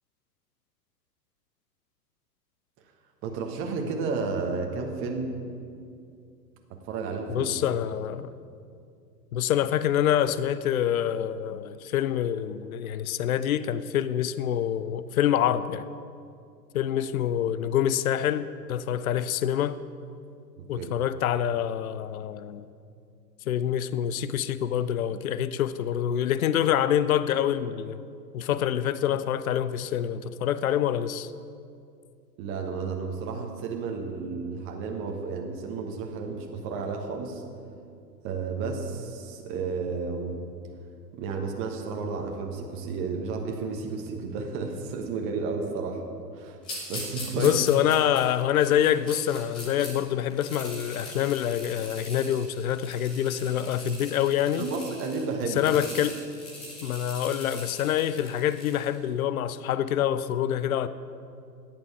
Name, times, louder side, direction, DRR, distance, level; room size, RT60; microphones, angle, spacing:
voice 1, 3.2-5.4 6.9-7.5 20.7-20.9 32.4-37.4 38.2-40.4 41.1-46.0 46.3-46.6 46.9-47.5 54.6-55.7, right 4 dB, 25° right, 1.2 m, -32 dB
voice 2, 7.3-8.3 9.3-15.9 16.7-19.8 20.7-22.6 23.5-28.0 28.3-31.3 47.4-54.7 55.6-56.2 56.8-60.9, left 10 dB, 55° left, 0.6 m, -26 dB
sound 1, 46.6-49.9 50.3-59.0, left 1 dB, 5° left, 0.3 m, -41 dB
16.0 x 9.0 x 4.7 m
figure-of-eight pair, 105°, 50 cm